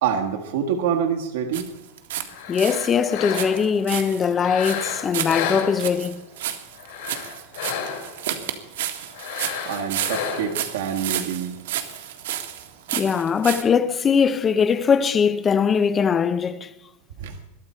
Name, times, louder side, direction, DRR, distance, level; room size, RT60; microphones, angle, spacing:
voice 1, 0.0-1.6 9.6-11.5 17.2-17.3, right 8 dB, 65° right, 1.6 m, -26 dB
sound 1, 1.5-2.3 2.5-13.6, right 11 dB, 85° right, 1.8 m, -31 dB
sound 2, 2.3-3.8 4.3-6.2 6.7-8.2 9.1-10.7, left 8 dB, 65° left, 3.6 m, -31 dB
voice 2, 2.5-6.2 12.9-16.7, left 6 dB, 15° left, 0.5 m, -21 dB
21.5 x 13.5 x 4.5 m
supercardioid pair, 180°, 0 cm